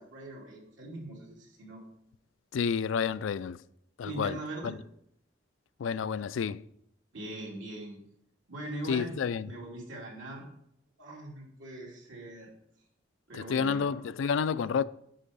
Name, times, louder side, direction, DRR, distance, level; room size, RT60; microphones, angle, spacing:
voice 1, 0.0-1.8 4.0-4.7 7.1-8.0 8.5-9.1 9.4-10.5 11.0-12.5 13.3-14.0, right 1 dB, 80° right, 2.9 m, -41 dB
voice 2, 2.5-3.6 4.0-4.4 4.6-4.7 5.8-6.6 8.9-9.5 13.3-14.8, left 6 dB, 85° left, 0.4 m, -30 dB
10.0 x 4.6 x 5.2 m
head